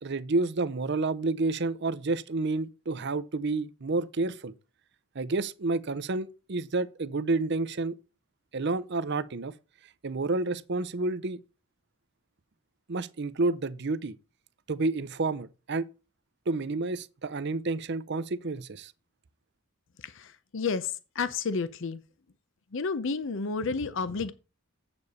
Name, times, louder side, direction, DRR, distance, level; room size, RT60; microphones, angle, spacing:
voice 1, 0.0-4.5 5.1-7.9 8.5-9.5 10.0-11.4 12.9-14.2 14.7-15.9 16.5-18.9, right 3 dB, 55° right, 0.6 m, -30 dB
voice 2, 20.0-22.0 22.7-24.3, left 4 dB, 60° left, 0.6 m, -31 dB
8.3 x 6.9 x 4.1 m
head